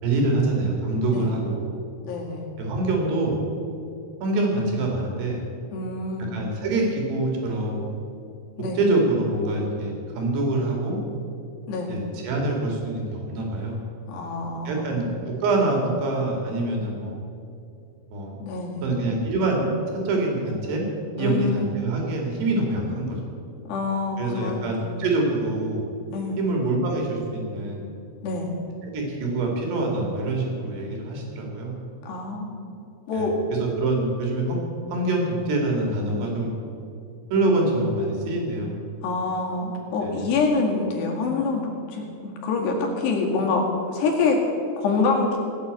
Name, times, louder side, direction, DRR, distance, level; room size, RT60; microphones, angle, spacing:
voice 1, 0.0-1.7 2.6-3.4 4.2-5.4 6.2-7.9 8.8-11.0 11.9-13.8 14.7-17.2 18.1-18.4 18.8-19.7 20.1-20.9 21.2-23.2 24.2-25.8 26.4-27.9 28.8-31.8 33.1-33.3 33.6-34.6 34.9-36.5 37.3-38.7 40.0-40.2, right 2 dB, 70° right, 0 dB, 4.4 m, -25 dB
voice 2, 2.0-2.5 5.7-6.3 8.6-8.8 11.7-11.9 14.1-15.0 18.4-18.9 21.2-21.7 23.7-25.1 26.1-26.4 28.2-28.5 32.1-32.6 33.1-33.4 39.0-44.4 44.8-45.4, left 4 dB, 75° left, 0 dB, 4.2 m, -26 dB
16.5 x 8.8 x 8.2 m, 2.6 s
omnidirectional pair, 5.0 m